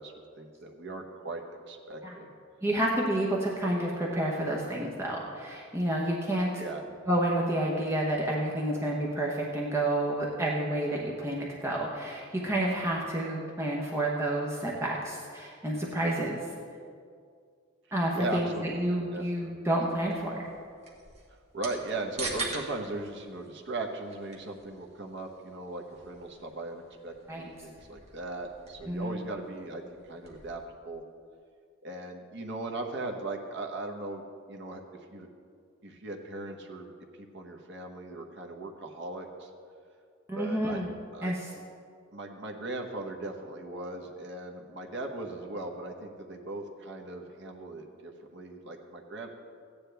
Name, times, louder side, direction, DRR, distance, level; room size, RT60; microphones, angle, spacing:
voice 1, 0.0-2.3 6.6-6.8 18.1-18.7 19.1-19.3 21.3-30.6 30.8-31.0 31.8-34.8 35.1-35.3 35.8-36.9 37.2-39.5 40.3-40.8 41.1-41.3 42.1-49.3, right 2 dB, 60° right, 3 dB, 1.1 m, -38 dB
voice 2, 2.6-6.6 7.1-16.4 17.9-20.5 27.3-27.5 28.9-29.2 40.3-40.9 41.2-41.5, right 1 dB, 15° right, -3 dB, 1.0 m, -29 dB
sound 1, 20.0-30.6, right 3 dB, 35° right, 1.4 m, -44 dB
15.0 x 9.7 x 3.4 m, 2.2 s
head